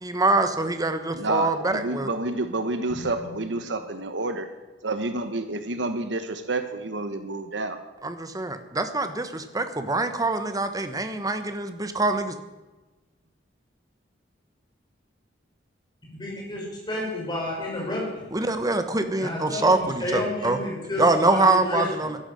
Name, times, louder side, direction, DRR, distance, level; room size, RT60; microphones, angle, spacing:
voice 1, 0.0-2.1 8.0-12.4 18.3-20.6 21.0-22.2, right 2 dB, 20° right, 8 dB, 1.2 m, -24 dB
voice 2, 1.1-4.5 4.8-7.8, right 2 dB, 70° right, 9 dB, 1.2 m, -29 dB
voice 3, 3.2-3.5 16.1-18.3 19.2-21.9, left 1 dB, 25° left, -2 dB, 5.3 m, -31 dB
12.5 x 11.0 x 7.8 m, 1.2 s
head